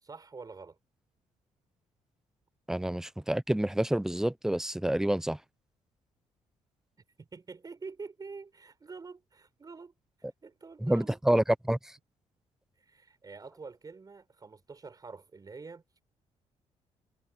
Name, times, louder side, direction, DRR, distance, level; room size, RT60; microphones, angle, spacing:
voice 1, 0.0-0.8 7.2-9.9 10.4-11.2 12.8-15.8, right 4 dB, 30° right, 5.2 m, -46 dB
voice 2, 2.7-5.4 10.8-11.8, right 1 dB, 5° right, 0.8 m, -28 dB
cardioid pair, 100°, 12 cm